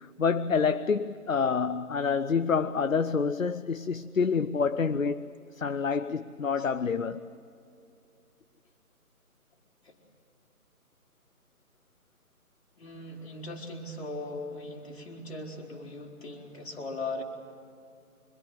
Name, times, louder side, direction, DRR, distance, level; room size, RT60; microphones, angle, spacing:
voice 1, 0.0-5.3 5.6-7.2, left 5 dB, 60° left, 0.8 m, -27 dB
voice 2, 12.8-17.2, left 2 dB, 45° left, 4.6 m, -39 dB
26.0 x 23.0 x 7.8 m
figure-of-eight pair, 150°, 45 cm